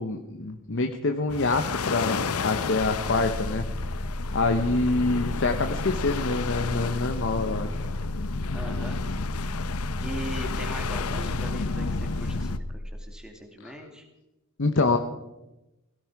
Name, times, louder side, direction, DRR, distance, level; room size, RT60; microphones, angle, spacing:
voice 1, 0.0-3.7 4.3-7.9 13.6-13.7 14.6-15.0, left 3 dB, 60° left, 5 dB, 1.0 m, -26 dB
sound 1, 1.3-12.6, left 4 dB, 90° left, 0.8 m, -32 dB
sound 2, 2.8-12.8, left 1 dB, 35° left, 3.1 m, -34 dB
voice 2, 8.5-9.0 10.0-14.1, equal, 5° right, 3 dB, 2.4 m, -40 dB
17.0 x 17.0 x 4.8 m, 0.97 s
head